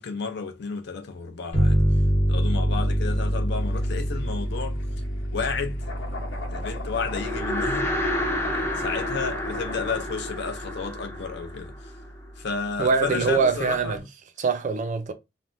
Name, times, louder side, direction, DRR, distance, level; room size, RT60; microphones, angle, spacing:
voice 1, 0.0-1.8 2.3-4.8 5.3-5.8 6.5-7.9 8.5-11.9 12.4-14.0, left 5 dB, 60° left, 0.6 m, -32 dB
sound 1, 1.5-10.8, equal, 35° left, 1.0 m, -27 dB
sound 2, 3.5-10.0, left 2 dB, 75° left, 1.1 m, -41 dB
sound 3, 7.0-12.4, left 1 dB, 15° left, 0.5 m, -30 dB
voice 2, 12.8-14.0 14.4-15.1, right 5 dB, 40° right, 0.4 m, -23 dB
3.2 x 2.1 x 2.5 m
head